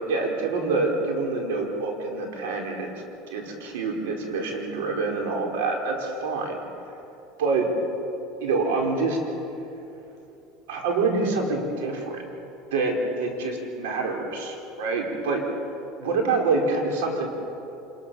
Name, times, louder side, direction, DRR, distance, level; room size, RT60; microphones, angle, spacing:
voice 1, 0.1-2.9 3.3-6.6 7.4-7.7 8.4-9.2 10.7-12.3 12.7-15.4 16.0-17.3, right 3 dB, 90° right, 1 dB, 4.6 m, -26 dB
27.0 x 21.5 x 7.1 m, 2.9 s
supercardioid pair, 125°, 0 cm